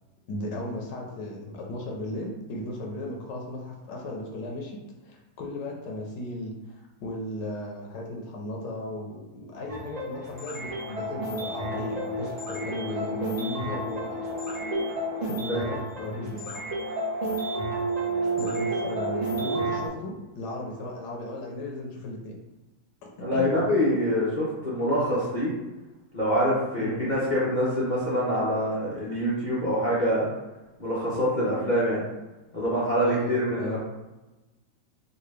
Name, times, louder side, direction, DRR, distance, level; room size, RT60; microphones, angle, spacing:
voice 1, 0.3-4.8 5.0-14.2 15.2-16.8 18.4-22.4 23.3-23.6 26.8-27.1 33.0-33.8, left 1 dB, 75° left, -1 dB, 1.3 m, -36 dB
sound 1, 9.7-19.9, right 1 dB, 35° right, 0.6 m, -31 dB
voice 2, 23.2-25.5 26.1-30.3 30.8-32.0 32.5-33.8, equal, 55° left, -8 dB, 0.5 m, -25 dB
3.8 x 2.4 x 3.2 m, 1.1 s
omnidirectional pair, 2.0 m